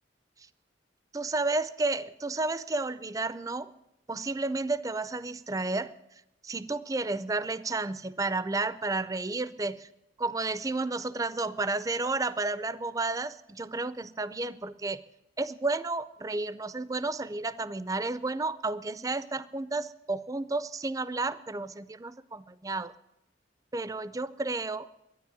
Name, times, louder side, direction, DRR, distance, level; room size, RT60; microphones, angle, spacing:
voice 1, 1.1-3.7 4.1-5.9 6.4-9.9 10.2-15.0 15.4-22.9 23.7-24.9, right 3 dB, 20° right, 16 dB, 0.4 m, -32 dB
12.5 x 9.7 x 9.2 m, 0.86 s
head